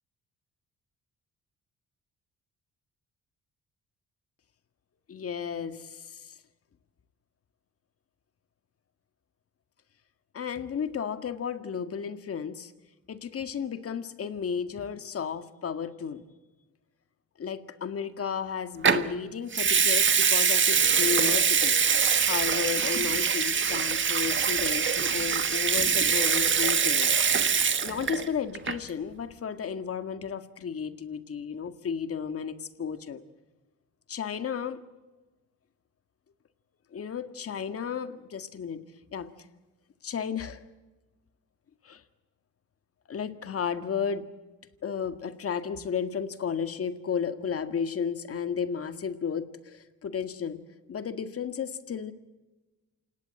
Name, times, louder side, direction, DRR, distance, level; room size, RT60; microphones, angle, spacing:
voice 1, 5.1-6.4 10.3-12.7 13.1-16.2 17.4-21.8 22.3-27.1 27.8-33.2 34.1-34.8 36.9-38.8 39.1-39.3 40.0-40.6 41.8-42.0 43.1-44.3 44.8-50.6 50.9-52.1, left 7 dB, 50° left, 10 dB, 1.9 m, -33 dB
Water tap faucet / Sink (filling or washing) / Liquid, 18.8-19.1 19.5-28.3 28.5-28.9, right 6 dB, 40° right, 1.5 m, -24 dB
28.0 x 18.0 x 7.8 m, 1.1 s
cardioid pair, 90°, 30 cm